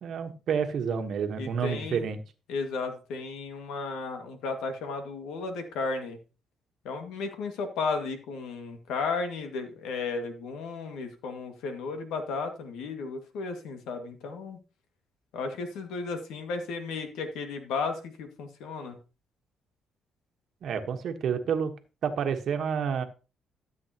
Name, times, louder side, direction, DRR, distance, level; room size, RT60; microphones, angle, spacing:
voice 1, 0.0-2.2 20.6-21.7 22.0-23.0, right 7 dB, 65° right, 7 dB, 1.3 m, -29 dB
voice 2, 1.4-2.1 2.5-6.2 6.8-14.6 15.3-19.0, left 4 dB, 90° left, 6 dB, 1.9 m, -34 dB
13.5 x 7.7 x 2.9 m, 0.32 s
cardioid pair, 90°, 0 cm